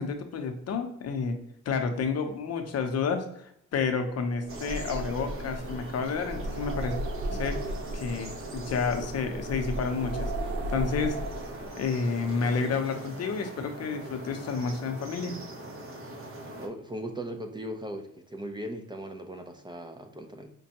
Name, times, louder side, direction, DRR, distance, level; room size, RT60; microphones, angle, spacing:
voice 1, 0.0-1.4 1.7-7.0 7.3-7.6 7.9-10.3 10.7-11.2 11.8-15.4, left 5 dB, 55° left, 6 dB, 0.7 m, -30 dB
sound 1, 4.3-11.9, right 1 dB, 85° right, 0.7 m, -35 dB
sound 2, 4.5-16.7, right 1 dB, 45° right, 1.0 m, -42 dB
voice 2, 16.6-20.5, equal, 15° right, 4 dB, 0.5 m, -38 dB
5.2 x 2.2 x 2.8 m, 0.74 s
cardioid pair, 90°, 30 cm